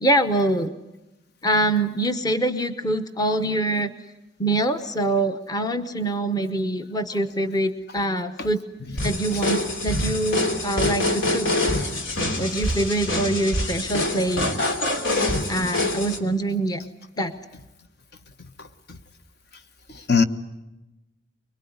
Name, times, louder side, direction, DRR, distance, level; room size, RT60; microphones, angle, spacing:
voice 1, 0.0-0.7 1.4-3.9 4.4-8.6 9.0-11.5 12.4-14.6 15.5-16.8 17.2-17.3, right 1 dB, 20° left, 1.0 m, -24 dB
sound 1, 9.0-16.2, left 1 dB, 80° left, 2.9 m, -25 dB
voice 2, 18.6-19.0 19.9-20.2, left 5 dB, 55° left, 1.3 m, -25 dB
24.5 x 22.5 x 9.5 m
head